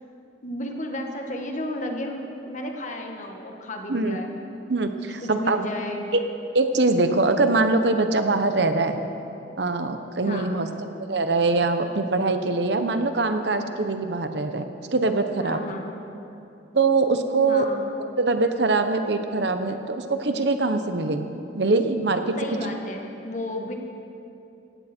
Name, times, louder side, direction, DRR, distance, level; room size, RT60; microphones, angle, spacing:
voice 1, 0.4-4.3 5.2-6.1 10.2-10.6 15.4-16.0 17.5-17.8 22.4-23.7, left 1 dB, 40° left, 2 dB, 1.6 m, -33 dB
voice 2, 4.7-5.6 6.1-6.2 6.5-9.0 9.6-10.7 11.1-14.6 14.9-15.6 16.7-17.7 18.2-21.3 21.5-22.3, right 3 dB, 65° right, 8 dB, 1.0 m, -23 dB
17.5 x 16.0 x 4.5 m, 2.8 s
head